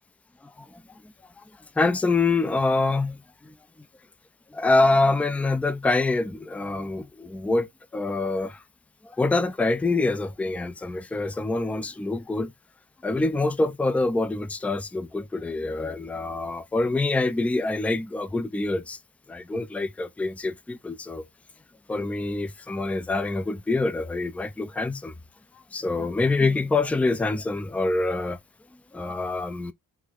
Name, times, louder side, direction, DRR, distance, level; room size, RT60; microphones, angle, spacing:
voice 1, 1.8-3.5 4.5-7.7 7.9-8.6 9.0-12.5 13.0-19.0 19.3-21.2 21.9-25.1 25.7-28.4 28.9-29.7, left 3 dB, 5° left, 0.4 m, -25 dB
5.9 x 2.3 x 3.3 m
hypercardioid pair, 40°, 49 cm